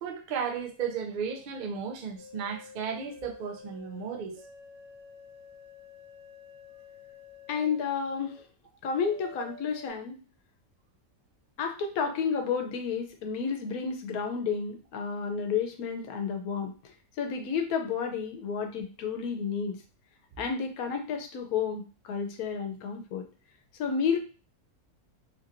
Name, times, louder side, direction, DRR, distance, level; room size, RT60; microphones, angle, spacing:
voice 1, 0.0-4.4, right 6 dB, 60° right, 0.5 m, -34 dB
sound 1, 2.2-8.4 8.9-9.9, left 3 dB, 60° left, 0.6 m, -50 dB
voice 2, 7.5-8.4 8.8-10.2 11.6-19.8 20.4-23.3 23.8-24.2, left 6 dB, 80° left, 1.1 m, -31 dB
3.0 x 2.7 x 2.5 m
omnidirectional pair, 1.5 m